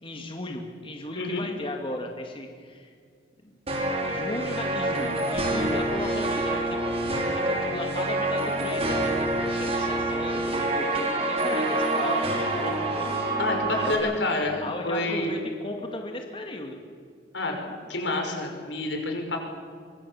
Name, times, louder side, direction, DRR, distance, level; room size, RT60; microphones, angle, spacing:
voice 1, 0.0-2.9 3.4-3.5 4.0-6.8 7.3-13.1 13.8-14.1 14.6-16.8, left 2 dB, 30° left, 2 dB, 2.3 m, -36 dB
sound 1, 3.7-13.9, right 2 dB, 35° right, 5.2 m, -27 dB
voice 2, 13.4-14.6 14.8-15.3 17.3-19.4, left 2 dB, 85° left, 2 dB, 5.8 m, -28 dB
24.5 x 24.0 x 7.2 m, 2.1 s
head